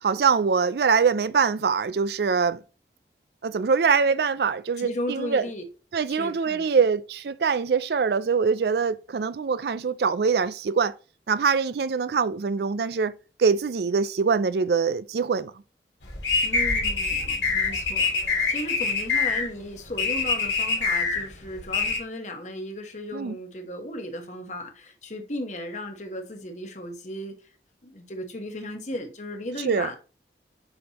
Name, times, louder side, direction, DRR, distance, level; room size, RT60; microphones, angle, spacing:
voice 1, 0.0-2.6 3.4-5.5 5.9-10.9 11.3-13.1 13.4-15.5 23.1-23.4 29.6-29.9, right 5 dB, 65° right, 0.4 m, -23 dB
voice 2, 4.8-5.6 6.1-6.7 16.4-27.3 27.8-30.0, left 1 dB, 40° left, 1.2 m, -35 dB
sound 1, 16.0-22.0, left 4 dB, 90° left, 2.4 m, -25 dB
6.9 x 5.3 x 3.0 m
head